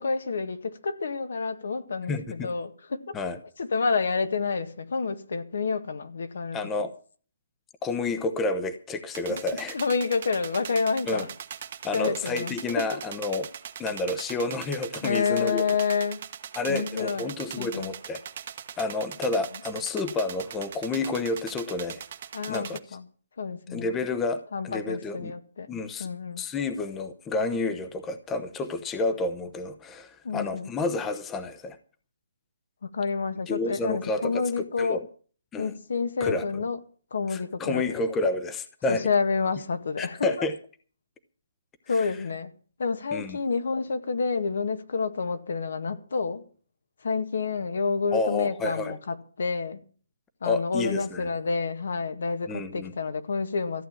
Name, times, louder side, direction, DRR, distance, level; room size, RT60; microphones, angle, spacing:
voice 1, 0.0-3.2 3.6-6.6 9.3-9.4 9.7-11.3 11.9-13.0 15.0-16.2 16.7-18.0 22.3-23.0 23.4-23.9 24.5-25.7 26.0-26.4 30.2-30.7 32.8-35.0 35.6-36.8 37.1-37.9 38.9-40.3 41.9-42.5 42.8-46.4 47.0-49.8 50.4-53.9, left 5 dB, 70° left, 1.8 m, -29 dB
voice 2, 2.1-2.5 3.1-3.4 6.5-6.9 7.8-9.8 11.1-11.2 11.8-13.5 13.8-15.6 16.6-18.2 18.8-22.0 22.5-22.8 23.7-25.3 25.7-26.1 26.4-31.8 33.5-35.1 35.5-35.7 36.2-36.5 37.3-39.0 40.0-40.5 42.0-42.1 43.1-43.4 48.1-49.0 50.4-51.3 52.5-52.9, left 3 dB, 10° left, 0.9 m, -30 dB
sound 1, 9.1-22.8, right 9 dB, 45° right, 1.2 m, -41 dB
14.5 x 8.6 x 7.4 m
hypercardioid pair, 165°, 0 cm